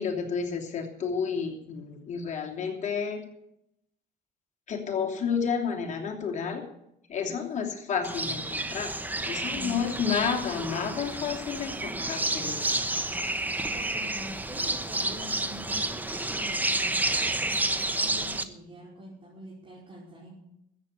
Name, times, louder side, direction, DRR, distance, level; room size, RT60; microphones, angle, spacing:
voice 1, 0.0-3.2 4.7-6.6 7.1-8.9 9.2-12.6, left 6 dB, 45° left, 1 dB, 3.1 m, -31 dB
sound 1, 8.0-18.4, right 2 dB, 10° right, 1.1 m, -30 dB
voice 2, 9.5-9.9 13.3-20.3, equal, 30° right, -5 dB, 4.9 m, -45 dB
14.0 x 8.4 x 8.4 m, 0.79 s
cardioid pair, 110°, 17 cm